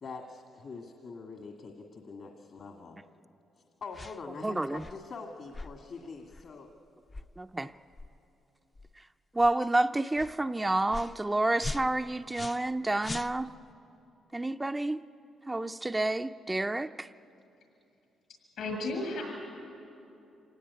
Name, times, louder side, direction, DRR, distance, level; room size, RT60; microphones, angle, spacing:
voice 1, 0.0-3.0 3.8-6.7, left 4 dB, 60° left, 2 dB, 1.9 m, -44 dB
sound 1, 3.9-4.2 4.7-5.0 5.5-5.7 6.3-6.5 7.1-7.3 7.9-8.1 8.7-8.9 9.4-9.5 10.1-10.3 10.9-11.2 11.6-12.7 13.0-13.7, left 3 dB, 30° left, 0.6 m, -41 dB
voice 2, 4.4-4.8 7.4-7.7 9.3-13.5 14.3-15.0 15.5-17.1, right 2 dB, 15° right, 8 dB, 0.5 m, -29 dB
voice 3, 18.6-19.2, left 2 dB, 75° left, 2 dB, 7.6 m, -33 dB
26.0 x 17.5 x 9.6 m, 2.8 s
cardioid pair, 85°, 0 cm